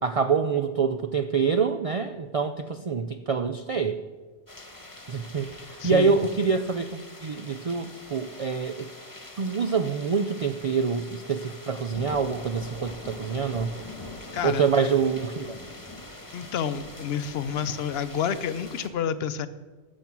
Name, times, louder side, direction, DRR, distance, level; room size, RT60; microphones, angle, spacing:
voice 1, 0.0-4.0 5.1-6.9 7.2-8.9 9.4-13.7 14.4-15.6, right 5 dB, 55° right, 8 dB, 0.3 m, -26 dB
sound 1, 4.5-18.9, left 2 dB, 20° left, 1.3 m, -43 dB
voice 2, 5.8-6.1 14.3-14.7 16.3-19.5, left 8 dB, 65° left, 13 dB, 0.8 m, -29 dB
12.5 x 7.5 x 6.0 m, 1.4 s
omnidirectional pair, 1.2 m